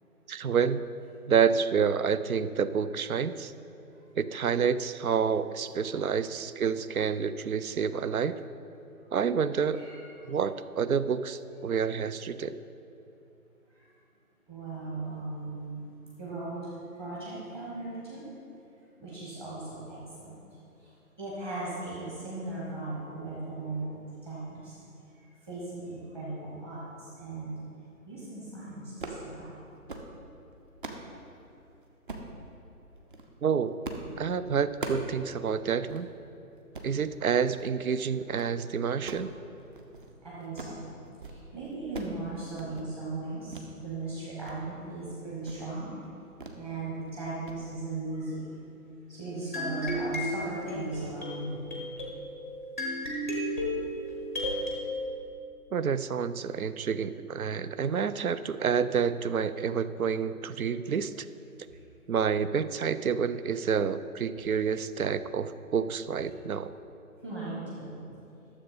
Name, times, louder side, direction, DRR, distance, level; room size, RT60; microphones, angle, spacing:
voice 1, 0.3-0.9 1.3-3.5 4.2-8.4 9.1-9.8 10.3-12.6 33.4-33.8 34.2-36.1 36.8-39.3 55.7-61.3 62.1-66.7, right 6 dB, 70° right, 14 dB, 0.6 m, -28 dB
voice 2, 14.5-18.2 19.0-20.3 20.8-20.9 21.2-24.7 25.1-27.6 28.0-29.6 40.2-40.8 41.2-46.0 46.6-48.5 49.1-51.7 61.7-61.8 67.2-68.0, right 2 dB, 15° right, -8 dB, 1.2 m, -38 dB
sound 1, 29.0-29.3 29.7-30.1 30.5-31.1 32.1-32.3 33.0-33.3 33.8-34.1 34.4-35.2 35.5-35.6 35.9-36.1 36.6-36.9 37.5-37.8 38.1-38.5 38.9-40.1 40.4-40.8 41.1-41.4 41.7-42.2 42.5-42.9 43.5-43.7 44.1-44.6 44.9-45.0 45.4-45.7 46.4-46.6 46.9-47.1 47.5-47.6, right 3 dB, 35° right, 0.8 m, -40 dB
sound 2, 49.5-54.8, equal, 10° left, 0.6 m, -34 dB
12.5 x 7.2 x 4.0 m, 2.8 s
figure-of-eight pair, 145°, 45 cm